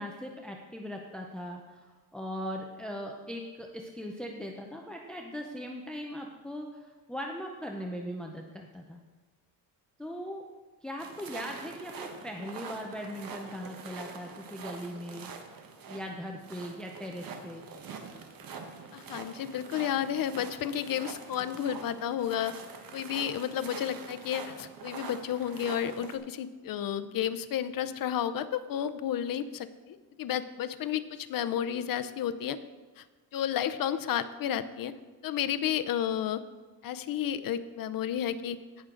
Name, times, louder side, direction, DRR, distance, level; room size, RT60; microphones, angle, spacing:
voice 1, 0.0-9.0 10.0-10.5 10.8-15.3 15.9-17.6, equal, ahead, 1 dB, 0.6 m, -39 dB
sound 1, 11.0-26.2, right 5 dB, 65° right, 1.3 m, -45 dB
voice 2, 18.9-22.5 22.9-32.6 33.0-33.1 33.3-34.9 35.2-36.4 36.8-38.6, left 10 dB, 65° left, 11 dB, 0.7 m, -32 dB
17.5 x 6.3 x 3.8 m, 1.3 s
wide cardioid pair, 155°, 37 cm